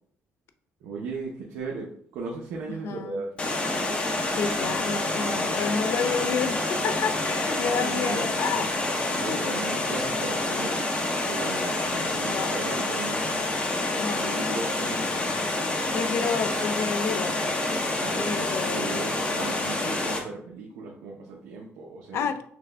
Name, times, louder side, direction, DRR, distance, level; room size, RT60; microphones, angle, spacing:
voice 1, 0.8-3.3 7.6-8.7 9.2-13.5 14.0-15.3 18.0-22.3, right 4 dB, 85° right, 0.7 m, -37 dB
voice 2, 2.7-3.2 4.3-8.8 9.3-9.6 12.3-12.7 14.0-14.6 15.9-17.4 18.2-19.1 22.1-22.4, left 6 dB, 60° left, 0.4 m, -30 dB
Water, 3.4-20.2, left 2 dB, 25° left, 0.8 m, -27 dB
5.8 x 2.2 x 3.4 m
cardioid pair, 130°, 5 cm